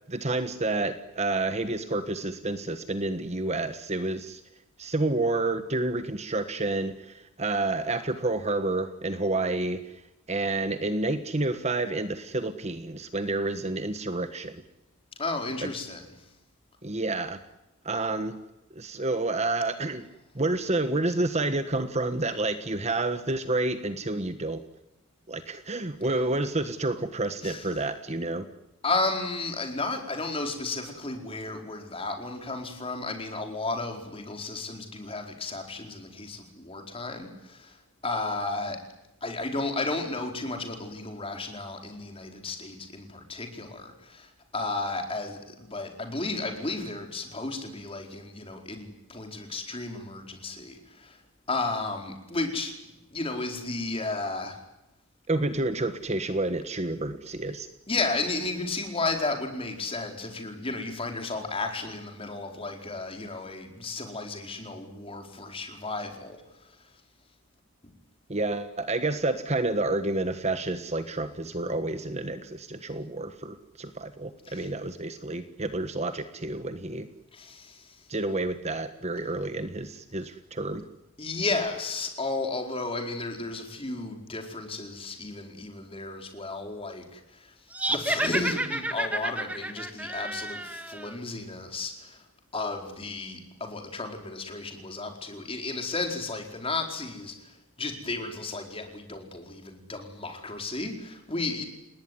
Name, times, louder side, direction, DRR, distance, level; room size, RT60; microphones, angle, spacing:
voice 1, 0.1-4.4 4.8-9.9 10.3-14.6 15.6-15.7 16.8-17.4 17.8-18.4 18.7-20.0 20.3-24.6 25.3-28.4 55.3-57.7 68.3-77.1 78.1-80.8, right 2 dB, 30° right, 10 dB, 1.4 m, -29 dB
voice 2, 15.2-16.1 27.4-27.7 28.8-37.8 38.0-38.8 39.2-51.2 51.5-52.7 53.1-54.6 57.9-66.7 74.4-74.7 77.3-78.1 81.2-87.5 87.9-92.2 92.5-101.6, left 3 dB, 25° left, 4 dB, 4.4 m, -33 dB
sound 1, 87.7-91.1, right 1 dB, 5° right, 1.5 m, -30 dB
29.5 x 19.0 x 9.7 m, 0.92 s
head